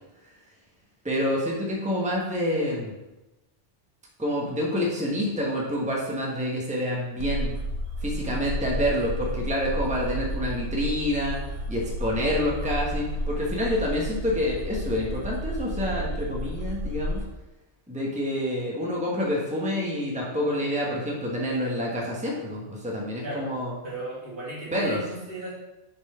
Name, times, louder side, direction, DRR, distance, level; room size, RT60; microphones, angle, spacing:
voice 1, 1.0-2.9 4.2-7.5 8.0-11.4 11.7-17.2 17.9-23.7 24.7-25.0, left 1 dB, 5° right, -3 dB, 1.4 m, -27 dB
sound 1, 7.2-17.2, equal, 85° right, 1.3 m, -32 dB
voice 2, 23.8-25.5, right 2 dB, 70° right, -7 dB, 2.9 m, -35 dB
7.1 x 4.5 x 5.7 m, 1.0 s
omnidirectional pair, 1.2 m